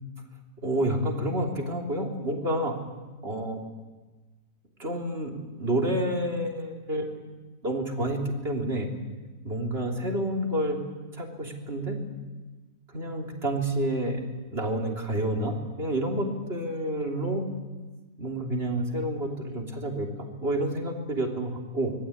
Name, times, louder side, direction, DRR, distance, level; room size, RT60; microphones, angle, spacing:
voice 1, 0.6-2.7 3.2-3.6 4.8-7.2 7.6-8.9 9.4-10.8 11.1-12.0 12.9-14.2 14.5-17.4 18.2-21.9, right 1 dB, 40° right, 1 dB, 3.7 m, -29 dB
26.0 x 20.5 x 8.7 m, 1.3 s
omnidirectional pair, 1.6 m